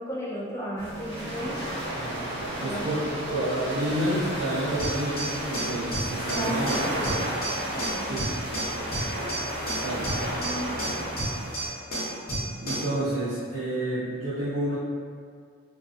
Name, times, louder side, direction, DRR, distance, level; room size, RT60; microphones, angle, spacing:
voice 1, 0.0-1.6 2.5-2.9 6.3-7.1 7.6-8.2 10.3-10.8, right 1 dB, 15° left, -6 dB, 0.4 m, -35 dB
sound 1, 0.8-11.7, right 1 dB, 25° right, 0.9 m, -32 dB
voice 2, 2.6-3.0 3.3-6.8 8.0-8.2 9.8-10.1 12.6-14.8, right 1 dB, 70° right, -12 dB, 0.6 m, -29 dB
sound 2, 4.8-13.0, right 1 dB, 40° left, 0.8 m, -32 dB
2.5 x 2.4 x 2.4 m, 2.1 s
head